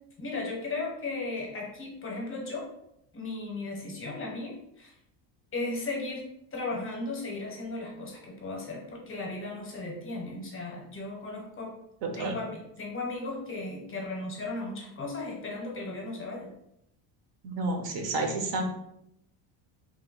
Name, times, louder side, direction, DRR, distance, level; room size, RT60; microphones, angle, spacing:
voice 1, 0.2-2.7 3.1-4.9 5.5-6.2 6.5-11.8 12.1-16.5, left 2 dB, 25° left, -1 dB, 0.6 m, -36 dB
voice 2, 12.0-12.4 17.4-18.6, right 2 dB, 60° right, 3 dB, 0.7 m, -30 dB
3.1 x 2.0 x 3.7 m, 0.77 s
cardioid pair, 155°, 47 cm